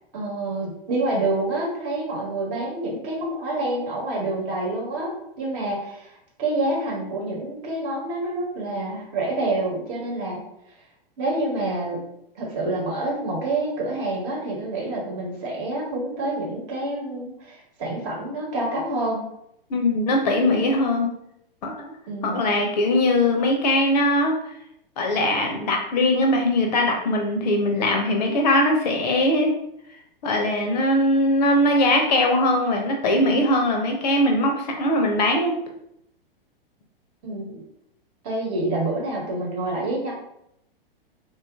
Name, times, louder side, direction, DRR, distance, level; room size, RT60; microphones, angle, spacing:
voice 1, 0.1-10.4 11.2-12.0 12.3-19.2 22.1-22.5 37.2-37.6 38.2-40.1, right 2 dB, 35° right, -3 dB, 1.1 m, -27 dB
voice 2, 19.7-21.1 21.6-21.9 22.2-24.3 25.0-29.5 30.2-35.6, left 1 dB, 45° left, 2 dB, 0.6 m, -21 dB
3.8 x 2.4 x 2.3 m, 0.77 s
figure-of-eight pair, 100°, 29 cm